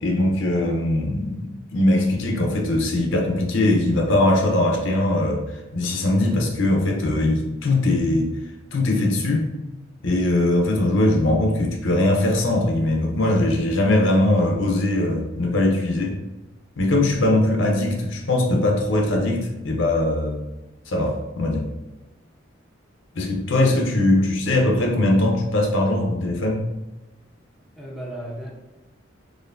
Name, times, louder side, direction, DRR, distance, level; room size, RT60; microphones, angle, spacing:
voice 1, 0.0-5.4 5.7-8.3 8.7-9.5 10.0-16.2 16.8-20.4 20.9-21.6 23.2-26.6, left 1 dB, 75° left, 1 dB, 0.7 m, -21 dB
voice 2, 27.8-28.5, equal, ahead, -3 dB, 0.7 m, -35 dB
4.2 x 3.1 x 2.5 m, 1.1 s
head